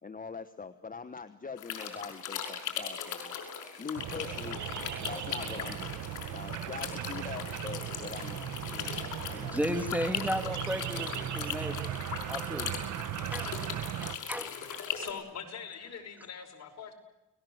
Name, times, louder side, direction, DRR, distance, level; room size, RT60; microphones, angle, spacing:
voice 1, 0.0-3.4 3.8-4.7 5.0-6.0 6.3-9.8, left 5 dB, 30° left, 10 dB, 1.2 m, -43 dB
sound 1, 1.6-15.1, left 8 dB, 80° left, 5.7 m, -39 dB
sound 2, 4.0-14.2, right 12 dB, 70° right, 1.1 m, -38 dB
voice 2, 9.0-11.9 12.3-12.7 13.3-13.5 14.0-14.6, equal, 5° right, 9 dB, 2.2 m, -35 dB
voice 3, 14.9-16.9, left 7 dB, 60° left, 5 dB, 5.5 m, -43 dB
30.0 x 20.0 x 8.0 m, 0.96 s
cardioid pair, 90°, 30 cm